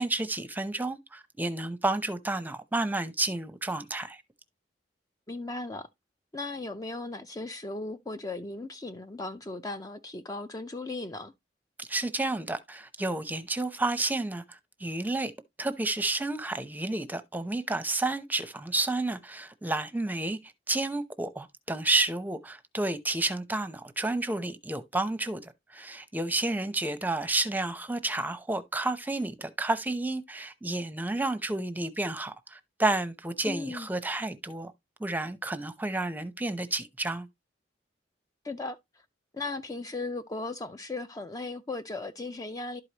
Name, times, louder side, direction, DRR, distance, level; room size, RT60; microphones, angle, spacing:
voice 1, 0.0-4.2 11.8-15.3 15.6-20.4 20.7-34.7 35.0-37.3, right 2 dB, 10° right, 0.7 m, -31 dB
voice 2, 5.3-5.9 6.3-11.3 33.4-33.9 38.4-38.8 39.3-42.8, left 2 dB, 20° left, 0.5 m, -37 dB
12.0 x 4.8 x 2.8 m
head